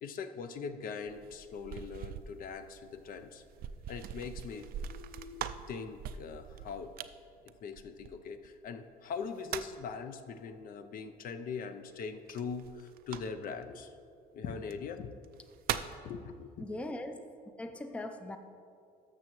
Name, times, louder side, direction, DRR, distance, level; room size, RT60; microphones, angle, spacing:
voice 1, 0.0-3.4 3.9-6.9 7.4-14.0 14.3-15.1 16.0-16.7, left 5 dB, 55° left, 8 dB, 0.5 m, -41 dB
sound 1, 1.1-8.5 9.1-9.9 12.3-13.6 14.6-14.7 15.2-16.1, right 9 dB, 60° right, 0.4 m, -42 dB
voice 2, 16.6-17.2 17.6-18.4, left 1 dB, 5° left, 7 dB, 0.4 m, -40 dB
13.0 x 6.3 x 3.0 m, 2.3 s
cardioid pair, 110°, 17 cm